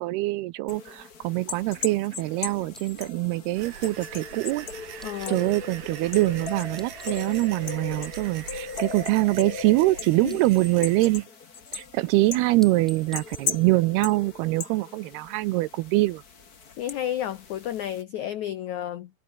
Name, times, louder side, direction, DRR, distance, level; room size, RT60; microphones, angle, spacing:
voice 1, 0.0-5.0 5.3-11.3 11.7-16.2, right 19 dB, 80° right, 2.5 m, -24 dB
sound 1, 0.7-18.0, left 5 dB, 40° left, 1.3 m, -38 dB
sound 2, 2.7-5.7 6.6-7.8 8.0-9.9 10.2-11.7 12.1-12.3 12.6-14.4, equal, ahead, 5.6 m, -50 dB
sound 3, 3.5-11.3, right 9 dB, 55° right, 3.6 m, -42 dB
voice 2, 5.0-5.4 10.2-10.4 16.8-19.1, left 11 dB, 80° left, 1.7 m, -31 dB
omnidirectional pair, 4.9 m